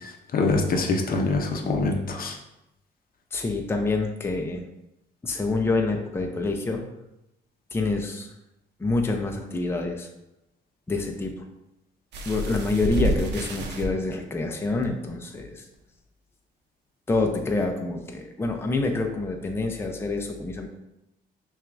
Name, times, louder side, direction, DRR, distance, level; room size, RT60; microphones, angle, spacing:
voice 1, 0.0-2.4, left 3 dB, 55° left, 3 dB, 0.6 m, -25 dB
voice 2, 3.3-4.6 5.2-6.8 7.7-8.3 8.8-10.1 10.9-11.5 12.3-15.7 17.1-20.7, left 3 dB, 15° left, 3 dB, 0.5 m, -27 dB
sound 1, 12.1-13.9 14.8-14.9 15.3-15.4, right 1 dB, 75° right, 0.7 m, -28 dB
5.8 x 2.4 x 2.5 m, 0.88 s
cardioid pair, 75°, 18 cm